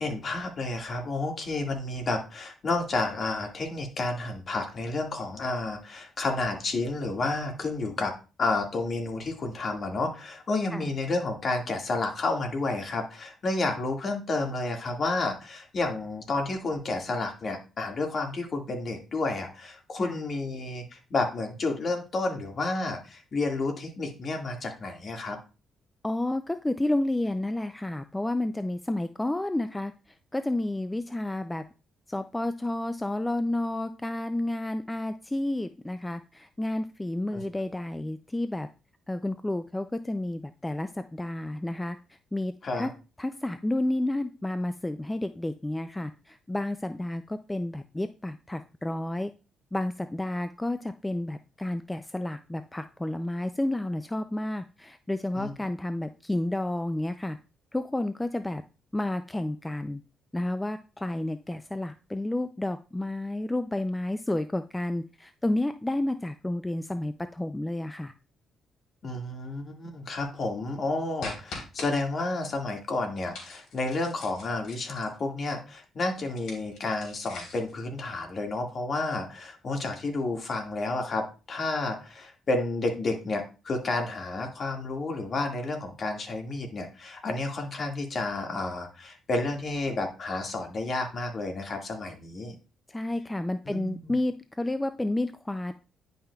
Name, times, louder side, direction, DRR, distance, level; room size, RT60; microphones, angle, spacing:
voice 1, 0.0-8.1 8.4-25.4 37.3-37.4 42.6-42.9 55.3-55.5 69.0-92.5 93.7-94.1, left 2 dB, 45° left, 3 dB, 1.9 m, -31 dB
voice 2, 26.0-29.9 30.3-31.6 32.1-38.7 39.1-42.9 43.2-49.3 49.7-57.4 57.7-58.6 58.9-60.0 60.3-68.1 92.9-95.7, left 1 dB, 10° left, 10 dB, 0.4 m, -31 dB
sound 1, 71.2-71.9 73.3-75.2 76.3-77.7, left 3 dB, 75° left, 3.3 m, -42 dB
10.0 x 5.6 x 2.3 m, 0.32 s
cardioid pair, 90°, 0 cm